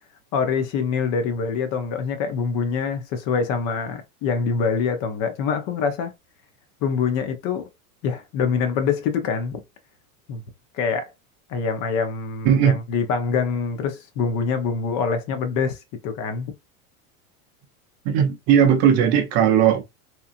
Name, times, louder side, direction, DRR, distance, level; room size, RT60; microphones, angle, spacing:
voice 1, 0.3-6.1 6.8-7.7 8.0-9.6 10.3-10.4 10.7-11.1 11.5-15.8 16.0-16.5, left 5 dB, 45° left, 0.8 m, -25 dB
voice 2, 12.4-12.8 18.1-19.8, right 8 dB, 35° right, 0.5 m, -17 dB
2.9 x 2.3 x 2.4 m
supercardioid pair, 125°, 45 cm